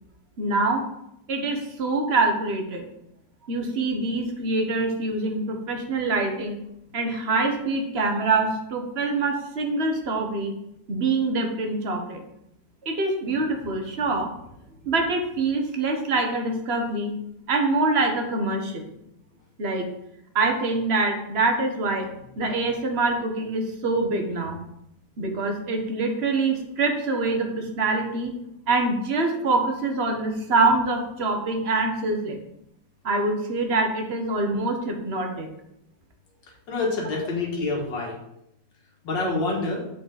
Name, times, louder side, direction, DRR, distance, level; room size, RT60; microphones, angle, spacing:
voice 1, 0.4-0.8 1.3-2.8 3.5-6.6 6.9-10.5 10.9-12.2 12.8-14.3 14.8-17.1 17.5-18.9 19.6-19.9 20.3-22.1 22.4-24.6 25.2-32.4 33.0-35.5, right 3 dB, 45° right, 3 dB, 1.0 m, -25 dB
voice 2, 36.7-38.2 39.0-39.8, left 3 dB, 80° left, -1 dB, 2.3 m, -26 dB
6.6 x 5.0 x 3.9 m, 0.80 s
omnidirectional pair, 2.0 m